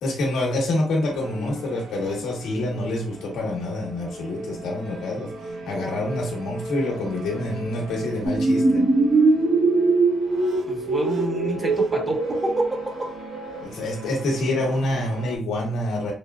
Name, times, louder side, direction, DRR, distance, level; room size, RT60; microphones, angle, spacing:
voice 1, 0.0-5.3 5.7-8.8 13.6-16.1, left 1 dB, 80° left, 1.5 m, -27 dB
sound 1, 1.0-15.4, right 1 dB, 75° right, 1.0 m, -38 dB
sound 2, 8.2-13.6, right 3 dB, 50° right, 1.6 m, -21 dB
voice 2, 10.7-13.1, equal, 20° right, 1.3 m, -28 dB
4.5 x 2.2 x 2.4 m
cardioid pair, 90°, 0 cm